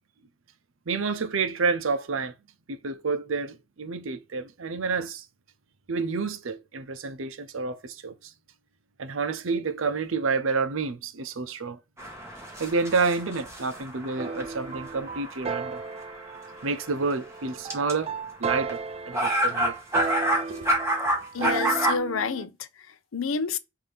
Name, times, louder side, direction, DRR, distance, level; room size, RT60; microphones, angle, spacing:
voice 1, 0.9-2.3 2.7-5.3 5.9-8.3 9.0-11.8 12.6-15.8 16.6-18.1 18.4-19.7 20.5-20.7, right 4 dB, 80° right, 0.7 m, -29 dB
sound 1, 12.0-17.1 17.7-17.9 18.7-18.8 19.1-22.0, right 1 dB, 15° right, 1.4 m, -28 dB
sound 2, 14.2-22.5, right 5 dB, 30° right, 0.4 m, -35 dB
voice 2, 21.3-23.6, left 5 dB, 85° left, 0.6 m, -29 dB
5.8 x 2.7 x 3.4 m
head